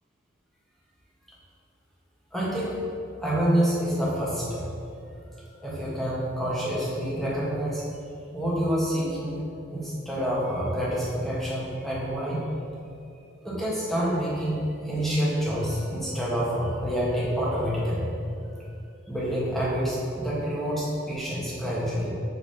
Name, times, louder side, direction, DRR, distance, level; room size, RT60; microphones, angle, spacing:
voice 1, 2.3-2.8 3.2-4.7 5.6-7.9 8.3-9.4 9.7-12.4 13.4-18.1 18.6-18.7 19.1-22.1, equal, ahead, -7 dB, 1.3 m, -27 dB
5.2 x 4.8 x 5.5 m, 2.6 s
head